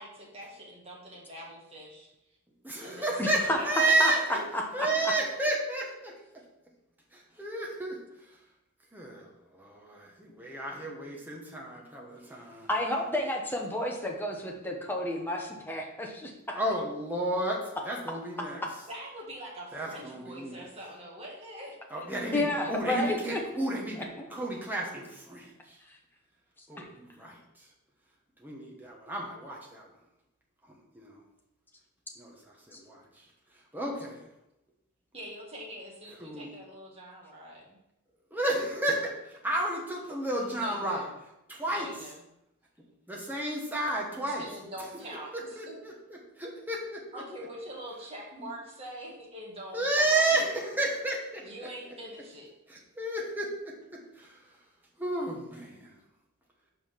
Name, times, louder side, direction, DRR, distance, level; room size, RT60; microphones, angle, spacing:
voice 1, 0.0-2.1 2.8-3.1 3.4-3.9 4.3-4.4 18.9-21.7 35.1-37.8 40.5-41.1 41.7-42.2 44.2-45.8 47.1-50.4 51.4-52.5, right 1 dB, 25° right, -4 dB, 1.8 m, -44 dB
voice 2, 2.6-4.4 4.7-6.1 7.1-8.0 8.9-12.7 16.5-18.6 19.7-20.6 21.9-25.8 26.7-27.4 28.4-29.9 30.9-31.2 32.2-32.3 32.7-33.0 33.7-34.2 36.2-36.5 38.3-41.1 41.5-41.9 43.1-44.5 45.3-47.2 48.4-48.5 49.7-51.4 52.7-53.7 54.2-54.3 55.0-56.0, right 2 dB, 10° right, -2 dB, 1.2 m, -32 dB
voice 3, 3.2-3.6 4.0-4.1 4.5-4.9 12.7-16.6 22.3-23.4 24.2-24.3 26.8-26.9, left 1 dB, 10° left, 0 dB, 0.9 m, -31 dB
5.6 x 4.8 x 5.6 m, 0.89 s
head